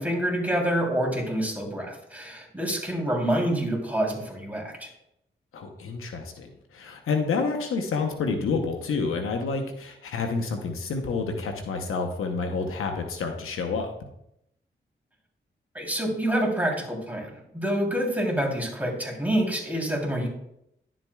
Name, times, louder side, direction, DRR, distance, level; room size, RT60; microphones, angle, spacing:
voice 1, 0.0-4.9 15.7-20.3, right 1 dB, 5° right, -1 dB, 3.2 m, -27 dB
voice 2, 5.5-13.9, left 4 dB, 90° left, 4 dB, 0.9 m, -29 dB
11.0 x 7.5 x 2.3 m, 0.78 s
cardioid pair, 45°, 21 cm